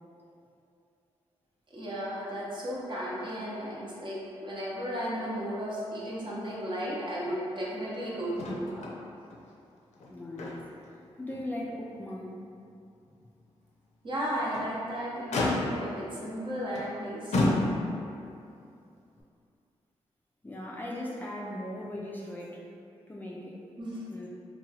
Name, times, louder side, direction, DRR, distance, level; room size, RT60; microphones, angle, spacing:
voice 1, 1.7-8.9 14.0-17.6 23.8-24.0, equal, 45° right, -6 dB, 0.7 m, -34 dB
Motor vehicle (road), 8.4-9.0 9.3-9.4 9.9-10.9 11.3-11.4 12.0-12.1 14.3-14.8 15.3-16.0 16.8-16.9 17.3-18.1 19.2-19.3, left 2 dB, 75° left, 0.4 m, -30 dB
voice 2, 10.1-10.7 11.2-12.4 20.4-22.6 23.1-23.6 24.1-24.3, left 1 dB, 15° left, -4 dB, 0.3 m, -38 dB
2.8 x 2.2 x 2.7 m, 2.5 s
cardioid pair, 65°, 12 cm